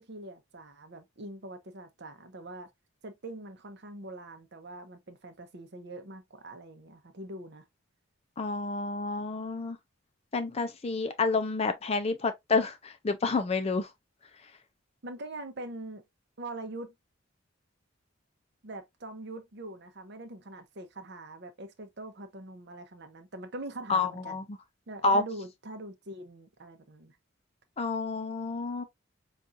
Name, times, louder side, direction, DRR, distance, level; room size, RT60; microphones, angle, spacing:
voice 1, 0.0-2.7 3.0-7.7 15.0-16.0 16.4-16.9 18.6-24.4 24.9-27.2, right 2 dB, 55° right, 0.7 m, -43 dB
voice 2, 8.4-9.8 10.3-13.9 23.9-24.4 25.0-25.2 27.8-28.8, left 3 dB, 30° left, 0.4 m, -29 dB
5.2 x 2.4 x 2.5 m
head